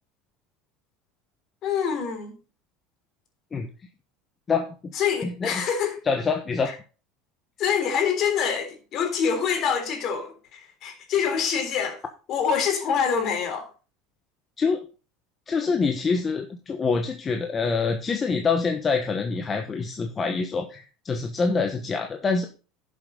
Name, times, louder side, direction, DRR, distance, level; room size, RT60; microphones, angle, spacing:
voice 1, 1.6-2.4 4.9-6.0 7.6-12.0 12.3-13.7, left 7 dB, 45° left, 3.6 m, -25 dB
voice 2, 4.5-4.9 5.2-5.6 6.1-6.7 14.6-14.8 15.5-22.5, left 4 dB, 25° left, 1.2 m, -25 dB
11.0 x 7.4 x 4.0 m
supercardioid pair, 130°, 0 cm